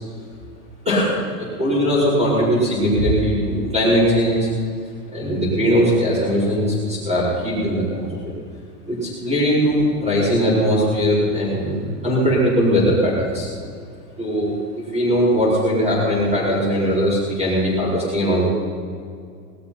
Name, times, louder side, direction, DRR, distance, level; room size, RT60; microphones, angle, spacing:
voice 1, 0.8-4.5 5.1-8.3 8.9-13.5 14.2-14.6 14.9-18.5, equal, 15° right, -11 dB, 4.9 m, -20 dB
19.0 x 13.0 x 5.8 m, 2.2 s
supercardioid pair, 180°, 45 cm